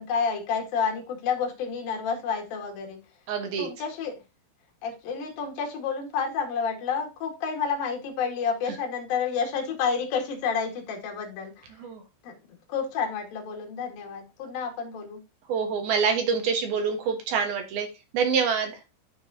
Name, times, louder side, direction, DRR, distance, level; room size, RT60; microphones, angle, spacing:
voice 1, 0.0-3.0 3.6-4.2 4.8-11.6 12.2-12.3 12.7-15.2, left 6 dB, 55° left, 3.5 m, -30 dB
voice 2, 3.3-3.7 11.8-12.0 15.5-17.9 18.1-18.7, right 6 dB, 65° right, 2.9 m, -26 dB
11.5 x 4.6 x 2.8 m
omnidirectional pair, 5.3 m